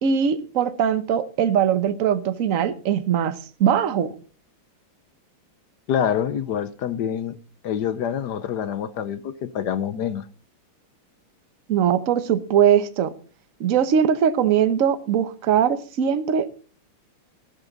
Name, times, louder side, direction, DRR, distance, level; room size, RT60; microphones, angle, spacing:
voice 1, 0.0-4.1 11.7-13.1 13.6-16.6, right 8 dB, 50° right, 1.0 m, -21 dB
voice 2, 5.9-7.4 7.6-10.3, left 9 dB, 65° left, 1.1 m, -26 dB
14.0 x 12.0 x 4.0 m
omnidirectional pair, 2.4 m